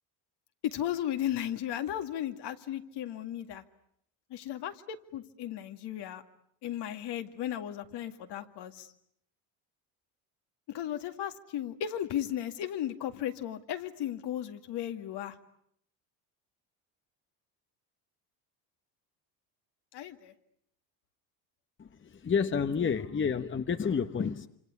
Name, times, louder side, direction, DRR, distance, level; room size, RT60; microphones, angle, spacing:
voice 1, 0.6-3.6 4.3-6.2 6.6-8.9 10.7-15.4 19.9-20.3, left 11 dB, 60° left, 7 dB, 2.3 m, -35 dB
voice 2, 21.8-24.5, left 6 dB, 25° left, 9 dB, 1.1 m, -30 dB
26.5 x 26.5 x 8.3 m, 0.71 s
supercardioid pair, 80°, 46 cm